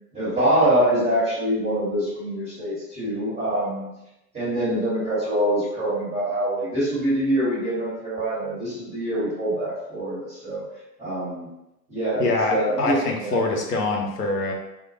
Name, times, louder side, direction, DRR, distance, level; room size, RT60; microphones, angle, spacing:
voice 1, 0.1-3.9 4.3-10.6 11.0-11.5 11.9-13.4, right 1 dB, 15° right, -10 dB, 1.0 m, -24 dB
voice 2, 12.2-14.5, left 3 dB, 75° left, 1 dB, 0.7 m, -24 dB
2.1 x 2.1 x 2.8 m, 0.89 s
figure-of-eight pair, 100°, 47 cm